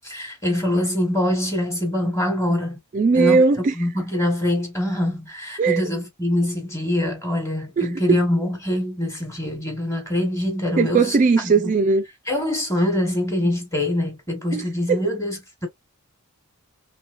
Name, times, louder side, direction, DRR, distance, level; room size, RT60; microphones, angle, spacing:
voice 1, 0.0-2.8 3.1-3.4 3.7-11.7 12.3-15.7, left 1 dB, 15° left, 1.2 m, -24 dB
voice 2, 2.9-3.7 5.6-5.8 7.8-8.2 10.8-12.0 14.5-15.0, right 4 dB, 35° right, 0.3 m, -19 dB
3.1 x 3.0 x 2.4 m
head